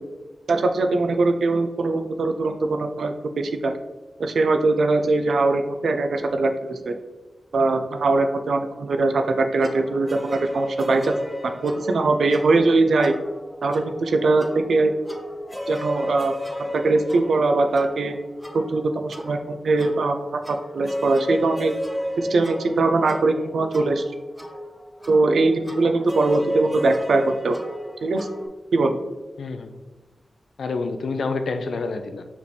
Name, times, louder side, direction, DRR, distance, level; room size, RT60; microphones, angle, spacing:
voice 1, 0.5-3.7 4.2-6.9 7.5-11.2 11.4-13.2 13.6-14.9 15.7-16.3 16.6-18.2 18.5-21.7 22.2-24.0 25.1-27.6 28.0-28.3 28.7-29.0, right 3 dB, 80° right, 0.4 m, -21 dB
sound 1, 9.6-28.5, left 1 dB, ahead, 0.6 m, -33 dB
voice 2, 29.4-29.8 30.6-32.3, left 3 dB, 85° left, 0.4 m, -28 dB
4.8 x 3.4 x 3.1 m
wide cardioid pair, 75°, 0 cm